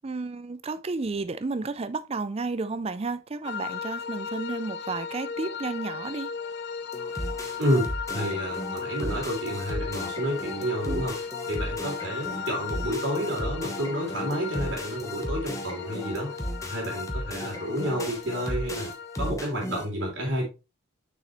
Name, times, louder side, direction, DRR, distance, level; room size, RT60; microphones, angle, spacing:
voice 1, 0.0-6.3 10.9-11.0, right 3 dB, 30° right, 0.4 m, -32 dB
sound 1, 3.4-19.3, left 6 dB, 50° left, 0.4 m, -36 dB
sound 2, 6.9-19.8, equal, 15° left, 1.0 m, -36 dB
voice 2, 7.6-11.2 11.5-16.3 16.6-18.9 19.2-20.5, equal, 60° right, 3.2 m, -30 dB
6.5 x 6.3 x 3.1 m
head